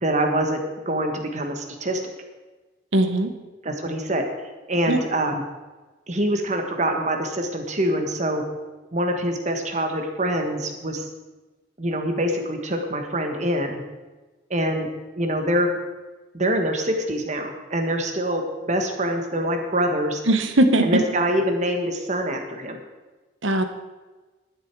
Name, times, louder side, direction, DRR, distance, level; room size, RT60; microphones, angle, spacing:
voice 1, 0.0-2.0 3.6-4.3 4.7-5.4 6.1-8.4 8.9-11.1 11.8-13.8 14.5-14.9 15.1-15.8 16.3-18.4 18.7-20.2 20.8-22.8, right 1 dB, 35° right, 4 dB, 1.5 m, -25 dB
voice 2, 2.9-3.3 4.9-5.0 20.3-20.8 23.4-23.6, right 1 dB, 75° right, 8 dB, 1.2 m, -19 dB
11.5 x 10.5 x 4.7 m, 1.2 s
head